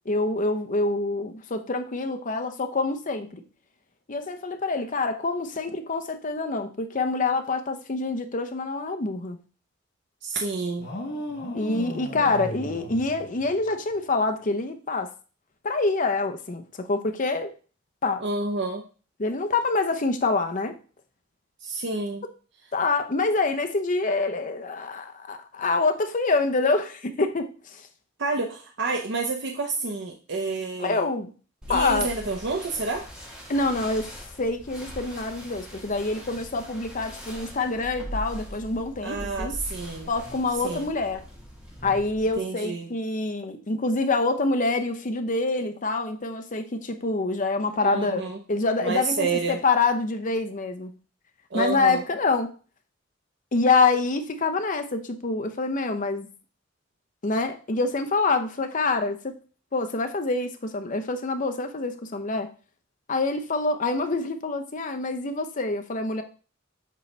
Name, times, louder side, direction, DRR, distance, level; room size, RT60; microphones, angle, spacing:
voice 1, 0.1-3.4 4.1-9.4 11.5-15.1 15.6-17.5 18.0-18.2 19.2-20.8 22.7-27.8 30.8-31.3 31.7-32.1 33.5-34.1 34.4-39.6 40.1-41.2 41.8-51.0 51.5-52.5 53.5-56.3 57.2-59.3 59.7-62.5 63.1-66.2, left 3 dB, 45° left, 0.7 m, -26 dB
voice 2, 10.2-10.9 18.2-18.8 21.6-22.2 28.2-31.1 31.7-33.1 39.0-40.1 40.6-40.9 42.4-42.9 47.8-48.4 48.8-49.6 51.5-52.0, right 3 dB, 65° right, 0.8 m, -29 dB
sound 1, 10.8-13.9, left 1 dB, 60° left, 1.2 m, -36 dB
sound 2, 31.6-42.3, equal, 5° right, 1.5 m, -40 dB
7.5 x 3.9 x 3.3 m
head